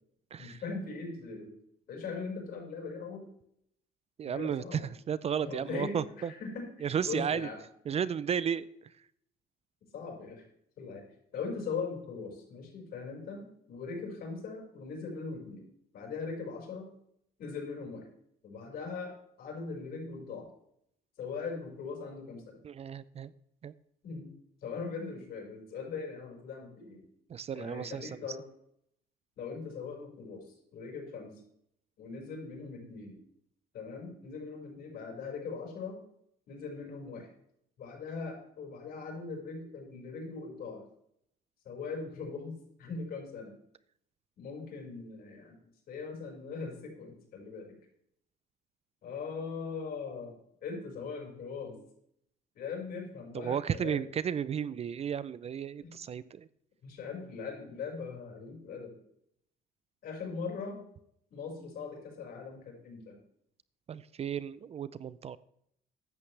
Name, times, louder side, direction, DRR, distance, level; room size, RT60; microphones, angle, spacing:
voice 1, 0.4-1.5 1.9-3.3 4.2-4.9 5.4-7.6 9.9-10.5 10.8-11.0 11.3-15.6 15.9-16.9 17.4-18.1 18.4-19.1 19.4-20.5 21.2-22.6 24.0-24.3 24.6-27.1 27.5-28.4 29.4-31.4 32.0-33.2 33.7-36.0 36.5-37.3 37.8-40.8 41.6-43.5 44.4-45.6 45.9-47.8 49.0-50.3 50.6-51.8 52.5-54.1 55.8-55.9 56.8-58.9 60.0-60.8 61.3-63.2, left 4 dB, 60° left, 0 dB, 5.5 m, -40 dB
voice 2, 4.2-4.8 5.1-6.3 6.8-7.5 7.9-8.7 22.6-23.3 23.6-23.7 27.3-28.1 53.3-56.5 63.9-65.4, right 8 dB, 40° right, 17 dB, 0.5 m, -33 dB
14.5 x 11.0 x 3.3 m, 0.72 s
cardioid pair, 110°, 17 cm